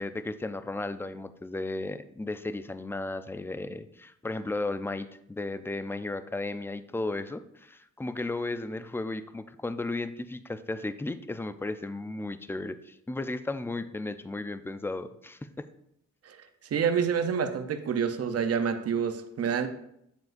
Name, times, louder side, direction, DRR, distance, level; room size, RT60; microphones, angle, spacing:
voice 1, 0.0-15.7, left 2 dB, 10° left, 11 dB, 0.4 m, -35 dB
voice 2, 16.7-19.7, right 7 dB, 55° right, 7 dB, 0.7 m, -27 dB
7.6 x 7.2 x 2.6 m, 0.75 s
cardioid pair, 75°, 29 cm